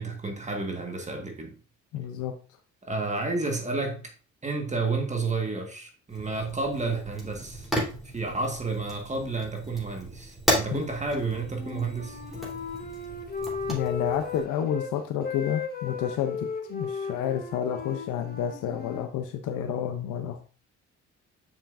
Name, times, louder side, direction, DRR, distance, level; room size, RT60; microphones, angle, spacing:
voice 1, 0.0-1.5 2.8-4.1 4.4-7.7 8.0-12.2, right 3 dB, 25° right, 1.5 m, -31 dB
voice 2, 1.9-2.3 10.7-10.8 13.7-20.4, left 9 dB, 85° left, 0.6 m, -30 dB
Fire, 6.1-14.5, equal, ahead, 3.2 m, -34 dB
Wind instrument woodwind instrument, 11.5-14.9 15.2-19.1, left 5 dB, 30° left, 1.3 m, -36 dB
7.0 x 5.7 x 2.5 m
cardioid pair, 90°, 30 cm